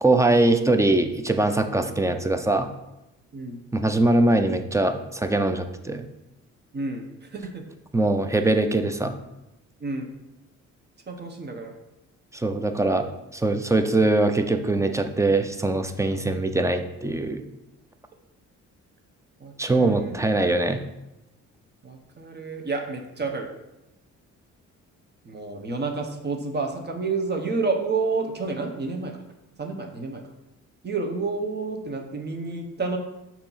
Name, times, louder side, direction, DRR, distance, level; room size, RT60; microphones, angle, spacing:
voice 1, 0.0-2.7 3.7-6.1 7.9-9.1 12.3-13.1 13.3-17.4 19.6-20.8, right 2 dB, 10° right, 7 dB, 0.5 m, -22 dB
voice 2, 6.7-7.1 7.3-7.6 9.8-10.1 11.1-11.7 19.4-20.1 21.8-23.5 25.2-29.2 29.6-30.2 30.8-33.0, right 4 dB, 35° right, 4 dB, 1.1 m, -29 dB
6.6 x 2.9 x 5.7 m, 0.92 s
cardioid pair, 90°, 30 cm